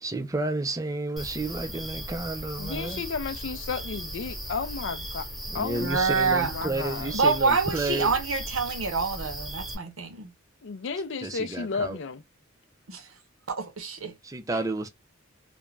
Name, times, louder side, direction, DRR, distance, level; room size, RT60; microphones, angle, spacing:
voice 1, 0.0-3.0 5.5-8.1 11.2-12.0 14.2-14.9, right 2 dB, 15° right, 0.4 m, -31 dB
sound 1, 1.2-9.7, equal, ahead, 1.0 m, -37 dB
voice 2, 2.6-5.3 5.5-6.0 6.3-7.1 10.6-12.2, left 5 dB, 60° left, 0.4 m, -33 dB
voice 3, 5.8-6.7 7.1-10.3 12.9-13.1 13.5-14.2, right 4 dB, 80° right, 0.8 m, -27 dB
2.4 x 2.1 x 3.1 m
head